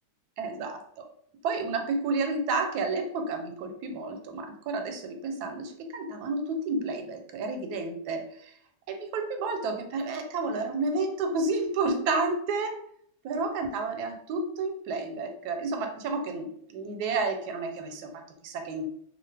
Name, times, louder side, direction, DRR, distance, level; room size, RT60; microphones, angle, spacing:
voice 1, 0.4-0.8 1.4-8.5 8.9-12.8 13.2-18.8, right 3 dB, 85° right, 5 dB, 1.1 m, -31 dB
2.8 x 2.1 x 3.2 m, 0.67 s
omnidirectional pair, 1.6 m